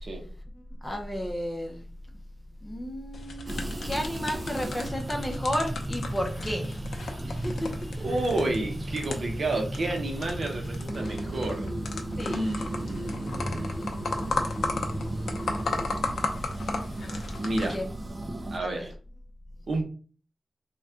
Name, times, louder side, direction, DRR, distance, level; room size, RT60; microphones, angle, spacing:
voice 1, 0.8-1.9 2.6-6.8 7.3-7.5 12.2-12.4 17.7-17.8 18.6-18.9, equal, 15° left, 2 dB, 0.7 m, -32 dB
sound 1, 3.1-17.7, left 3 dB, 80° left, 0.6 m, -36 dB
sound 2, 3.5-18.6, right 1 dB, 30° right, 0.4 m, -35 dB
voice 2, 8.0-11.8 12.2-13.7 17.4-17.8 18.5-18.9 19.7-19.8, right 2 dB, 50° right, 3 dB, 0.8 m, -31 dB
4.0 x 2.2 x 3.6 m, 0.41 s
wide cardioid pair, 155°, 0 cm